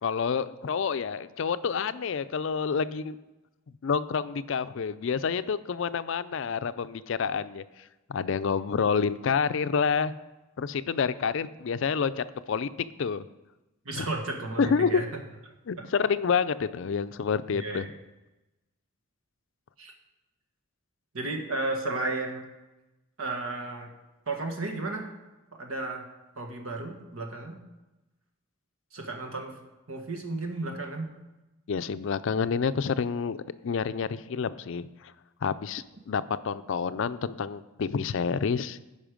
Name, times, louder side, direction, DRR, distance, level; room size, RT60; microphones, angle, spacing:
voice 1, 0.0-3.2 3.8-7.6 8.1-10.1 10.6-12.7 13.0-13.2 14.0-14.1 14.6-15.0 15.7-17.8 31.7-33.4 33.6-34.9 35.4-38.8, left 6 dB, 60° left, 13 dB, 0.4 m, -28 dB
voice 2, 13.8-15.1 17.5-17.8 19.8-19.9 21.1-22.5 23.2-23.9 24.3-25.1 25.5-26.0 26.4-27.6 28.9-29.5 29.9-31.1, right 2 dB, 80° right, 3 dB, 1.6 m, -33 dB
14.0 x 5.4 x 5.1 m, 1.0 s
head